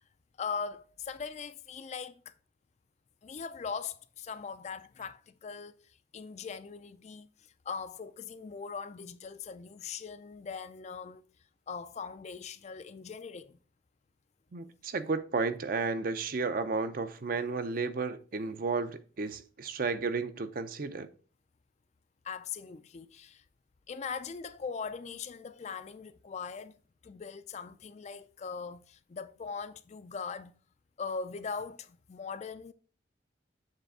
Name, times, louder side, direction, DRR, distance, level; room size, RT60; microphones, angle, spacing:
voice 1, 0.4-2.3 3.2-11.2 11.7-13.6 22.2-23.4 23.9-30.6 31.0-32.7, left 5 dB, 35° left, 0.3 m, -40 dB
voice 2, 14.5-21.1, right 4 dB, 45° right, 0.5 m, -33 dB
7.5 x 3.3 x 4.8 m
head